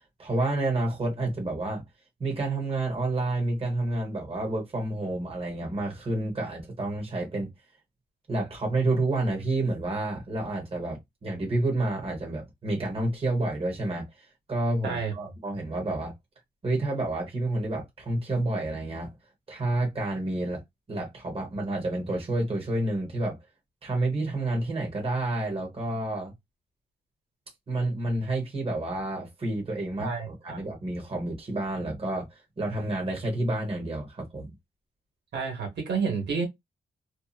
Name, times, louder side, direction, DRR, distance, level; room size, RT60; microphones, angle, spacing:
voice 1, 0.2-1.8 2.2-7.5 8.3-14.1 14.5-16.1 16.6-19.1 19.5-20.6 20.9-23.4 23.8-26.3 27.7-32.3 32.6-34.5, right 2 dB, 35° right, 1.3 m, -29 dB
voice 2, 14.8-15.1 30.0-30.6 35.3-36.5, right 5 dB, 90° right, 1.4 m, -30 dB
2.7 x 2.4 x 2.4 m
wide cardioid pair, 165°, 17 cm